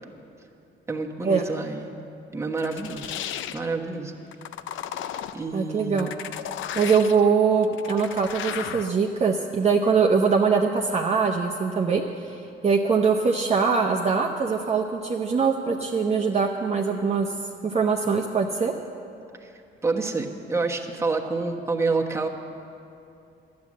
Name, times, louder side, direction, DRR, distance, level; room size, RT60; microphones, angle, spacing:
voice 1, 0.9-1.9 2.3-3.1 3.5-4.1 5.3-6.1 19.4-19.5 19.8-22.3, right 3 dB, 15° right, 1 dB, 1.2 m, -28 dB
sound 1, 2.6-3.7 4.3-5.4 6.0-7.2 7.6-8.9, left 10 dB, 80° left, 0.5 m, -34 dB
voice 2, 5.5-6.1 6.8-17.3 17.6-18.7, right 5 dB, 35° right, 1 dB, 0.8 m, -22 dB
12.0 x 9.5 x 7.5 m, 2.6 s
cardioid pair, 90°, 20 cm